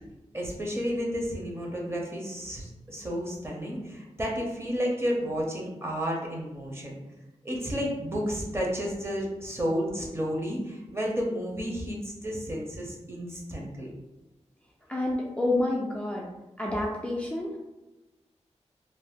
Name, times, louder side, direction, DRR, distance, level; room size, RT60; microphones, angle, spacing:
voice 1, 0.3-6.9 7.4-13.9, equal, 20° right, -2 dB, 0.7 m, -31 dB
voice 2, 14.9-16.3 16.6-17.6, left 2 dB, 10° left, -4 dB, 0.4 m, -28 dB
2.6 x 2.0 x 3.5 m, 1.0 s
wide cardioid pair, 90°, 12 cm